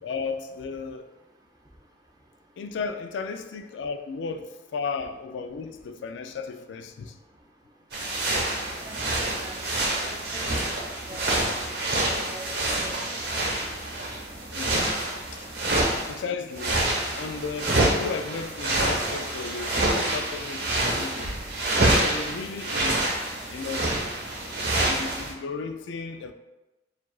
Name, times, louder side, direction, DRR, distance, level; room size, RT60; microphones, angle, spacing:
voice 1, 0.0-1.1 2.6-7.2 11.1-11.2 14.5-14.8 15.3-15.5 16.1-16.9 17.2-21.4 21.9-23.1 23.5-24.0 24.9-26.3, left 5 dB, 85° left, 0.3 m, -34 dB
sound 1, 7.9-16.2 16.5-25.3, right 1 dB, 65° right, 1.1 m, -27 dB
voice 2, 8.8-9.6 10.0-10.7 11.1-11.2 12.1-12.9, right 1 dB, 20° right, 0.6 m, -43 dB
7.3 x 2.4 x 2.3 m
head